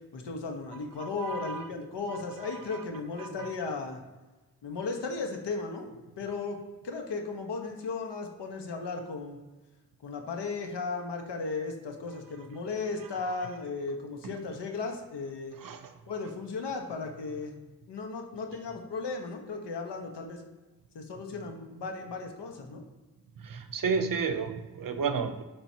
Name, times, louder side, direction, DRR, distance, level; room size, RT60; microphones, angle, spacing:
voice 1, 0.1-4.0 4.6-6.6 6.8-9.4 10.0-15.6 16.1-17.6 17.9-20.4 20.9-22.8, left 4 dB, 80° left, 3 dB, 1.3 m, -36 dB
voice 2, 1.0-1.7 2.1-2.2 2.4-2.6 3.2-3.5 14.2-14.3 15.6-15.9 23.4-25.4, right 5 dB, 55° right, 9 dB, 0.7 m, -32 dB
7.3 x 5.3 x 2.8 m, 1.2 s
cardioid pair, 80°, 41 cm